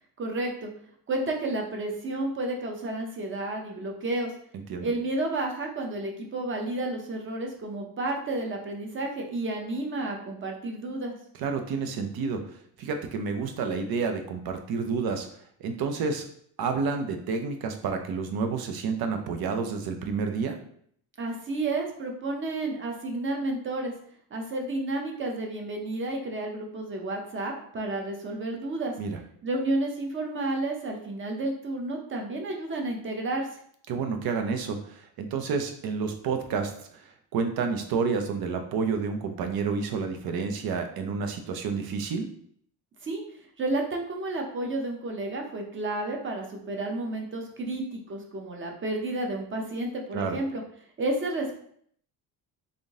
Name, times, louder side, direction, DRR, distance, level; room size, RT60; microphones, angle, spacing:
voice 1, 0.2-0.7 1.1-4.3 4.8-11.2 21.2-23.9 24.3-28.9 29.4-33.6 43.0-43.2 43.6-50.6 51.0-51.6, right 2 dB, 30° right, 1 dB, 0.7 m, -31 dB
voice 2, 11.4-15.3 15.6-16.3 16.6-20.6 29.0-29.2 33.9-42.3 50.1-50.4, right 5 dB, 65° right, 6 dB, 0.7 m, -30 dB
3.6 x 2.6 x 3.5 m, 0.64 s
cardioid pair, 140°, 39 cm